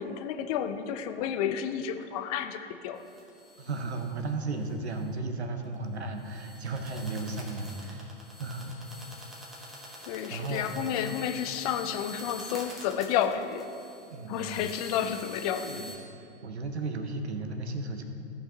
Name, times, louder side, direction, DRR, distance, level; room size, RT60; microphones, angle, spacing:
voice 1, 0.0-3.0 10.0-13.7 14.3-15.9, left 9 dB, 35° left, 8 dB, 0.5 m, -31 dB
sound 1, 3.0-4.3 4.6-4.7 5.0-5.3 5.6-16.0, left 1 dB, ahead, 1.5 m, -46 dB
voice 2, 3.6-8.1 8.4-8.8 10.3-10.7 10.9-11.1 14.1-14.6 15.7-15.9 16.4-18.0, right 3 dB, 70° right, 6 dB, 1.0 m, -34 dB
15.0 x 5.5 x 2.9 m, 2.6 s
figure-of-eight pair, 95°, 34 cm